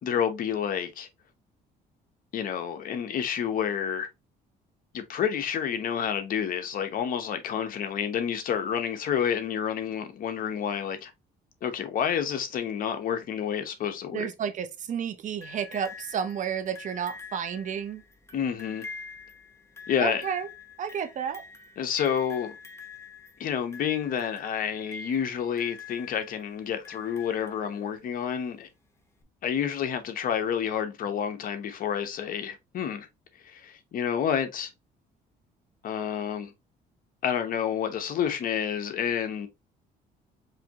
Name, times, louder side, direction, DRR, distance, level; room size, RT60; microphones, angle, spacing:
voice 1, 0.0-1.1 2.3-4.1 4.9-11.1 11.6-14.3 18.3-18.9 19.9-20.2 21.8-22.6 23.4-28.7 29.4-33.1 33.4-34.7 35.8-36.5 37.2-39.5, left 8 dB, 55° left, 1.0 m, -29 dB
voice 2, 14.1-18.0 20.0-20.5 20.8-21.4, right 8 dB, 50° right, 0.8 m, -31 dB
sound 1, 15.4-28.2 29.2-29.3, left 4 dB, 15° left, 0.9 m, -46 dB
4.9 x 2.8 x 2.9 m
cardioid pair, 110°, 17 cm